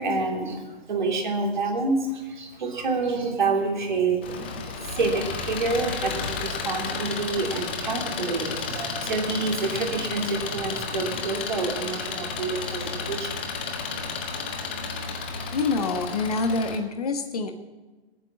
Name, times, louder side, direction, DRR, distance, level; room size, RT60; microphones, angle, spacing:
voice 1, 0.0-13.5, right 3 dB, 45° right, 2 dB, 3.1 m, -28 dB
Engine, 4.2-16.8, left 4 dB, 10° left, 0.6 m, -32 dB
voice 2, 15.5-17.5, left 3 dB, 35° left, 6 dB, 1.4 m, -26 dB
20.5 x 8.6 x 7.3 m, 1.2 s
figure-of-eight pair, 140°, 32 cm